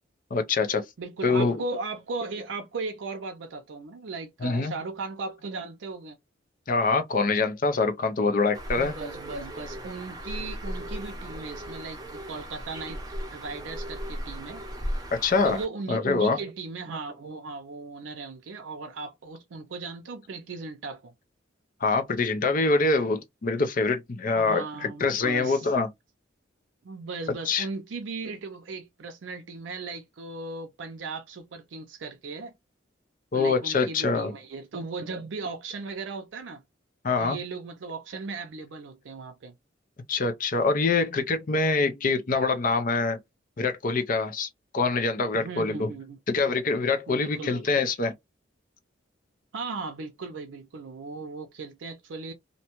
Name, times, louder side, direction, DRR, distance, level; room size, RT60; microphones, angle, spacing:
voice 1, 0.3-0.8 1.2-1.6 4.4-4.7 6.7-9.0 15.1-15.6 15.9-16.4 21.8-25.9 27.5-27.7 33.3-34.3 37.0-37.4 40.1-43.2 43.6-45.9 46.3-48.1, left 4 dB, 45° left, 0.5 m, -25 dB
voice 2, 1.0-6.2 8.8-13.0 13.3-14.7 15.4-21.1 24.3-25.7 26.8-32.5 33.3-36.6 37.2-39.5 45.3-46.2 47.1-47.8 49.5-52.3, right 3 dB, 75° right, 0.5 m, -37 dB
Bird, 8.5-15.7, equal, 20° right, 0.6 m, -36 dB
2.6 x 2.2 x 2.9 m
head